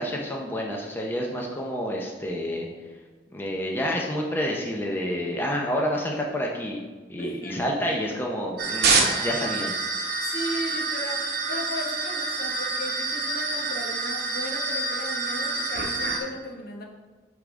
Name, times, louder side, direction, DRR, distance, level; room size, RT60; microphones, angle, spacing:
voice 1, 0.0-2.7 3.3-6.8 7.1-9.7, equal, 10° left, -1 dB, 0.6 m, -29 dB
voice 2, 7.2-7.7 10.2-16.8, equal, 55° left, 0 dB, 1.0 m, -36 dB
sound 1, 8.6-16.2, right 3 dB, 60° right, 0.9 m, -27 dB
8.7 x 3.5 x 3.6 m, 1.4 s
head